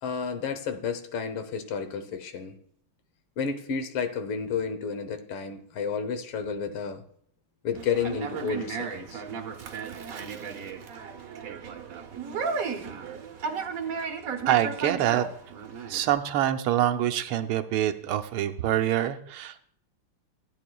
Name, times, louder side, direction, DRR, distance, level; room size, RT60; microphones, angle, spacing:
voice 1, 0.0-2.6 3.4-7.0 7.6-9.2, left 6 dB, 90° left, 8 dB, 1.9 m, -31 dB
Conversation, 7.7-16.1, right 5 dB, 60° right, 1.0 m, -34 dB
voice 2, 14.5-15.3 15.9-19.6, right 12 dB, 80° right, 8 dB, 1.5 m, -25 dB
15.5 x 9.1 x 2.3 m, 0.64 s
omnidirectional pair, 2.4 m